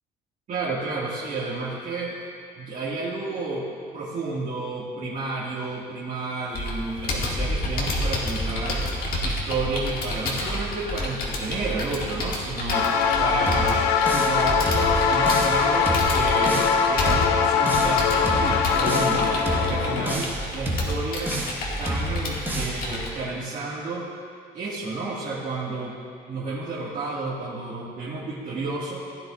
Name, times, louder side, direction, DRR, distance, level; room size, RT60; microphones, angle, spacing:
voice 1, 0.5-2.2 2.6-3.7 3.9-8.9 9.2-12.9 13.2-13.9 14.1-19.3 19.6-24.1 24.5-25.9 26.3-29.0, right 3 dB, 50° right, -7 dB, 2.0 m, -31 dB
Computer keyboard, 6.5-23.1, left 1 dB, 55° left, 2.1 m, -30 dB
sound 1, 12.7-20.1, left 6 dB, 90° left, 0.7 m, -22 dB
sound 2, 13.5-14.4 14.7-15.6 15.9-16.8 17.1-18.0 18.3-19.2 19.5-20.4 20.7-21.6 21.9-22.8, right 1 dB, 10° right, 1.6 m, -29 dB
16.0 x 9.9 x 2.5 m, 2.3 s
cardioid pair, 110°, 17 cm